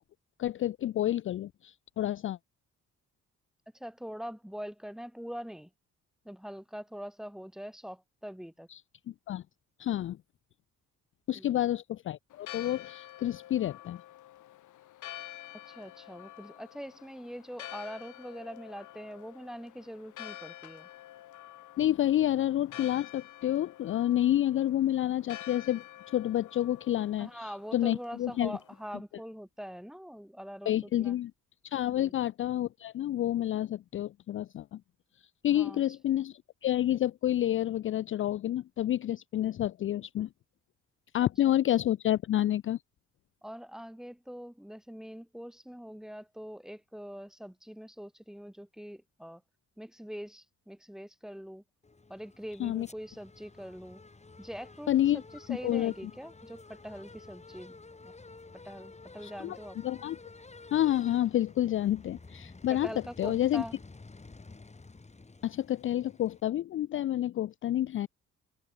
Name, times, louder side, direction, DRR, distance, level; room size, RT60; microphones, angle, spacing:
voice 1, 0.4-2.4 8.7-8.8 9.1-9.4 9.8-10.2 11.3-14.0 21.8-28.5 30.7-31.3 31.6-34.8 35.4-40.3 41.1-42.8 52.6-52.9 54.9-55.2 55.5-55.9 59.2-59.6 59.8-60.2 60.7-62.9 63.2-63.6 65.4-68.1, left 12 dB, 45° left, 0.4 m, -29 dB
voice 2, 3.7-5.7 6.2-8.7 11.3-11.6 15.7-20.9 27.2-31.2 31.9-32.2 35.4-35.8 41.2-41.5 43.4-49.4 49.8-51.6 52.1-54.0 54.4-57.8 58.0-58.1 58.5-59.8 62.7-63.8, equal, ahead, 2.4 m, -43 dB
Church bell, 12.3-29.0, left 13 dB, 80° left, 2.6 m, -49 dB
sound 1, 51.8-66.4, left 3 dB, 20° left, 6.8 m, -51 dB
cardioid pair, 90°, 30 cm